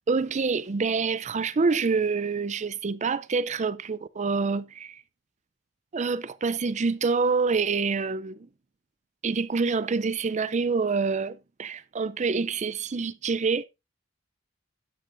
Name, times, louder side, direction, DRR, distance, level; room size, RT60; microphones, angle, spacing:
voice 1, 0.1-5.0 5.9-8.5 9.2-13.6, right 4 dB, 40° right, 0.5 m, -26 dB
13.0 x 9.2 x 2.6 m
head